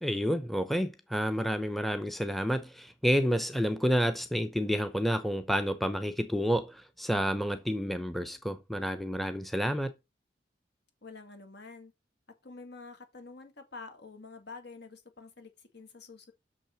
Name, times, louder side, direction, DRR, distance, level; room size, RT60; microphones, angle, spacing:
voice 1, 0.0-9.9, equal, ahead, 0.7 m, -29 dB
voice 2, 11.0-11.9 12.4-16.3, left 4 dB, 65° left, 2.1 m, -48 dB
6.6 x 6.2 x 5.8 m
head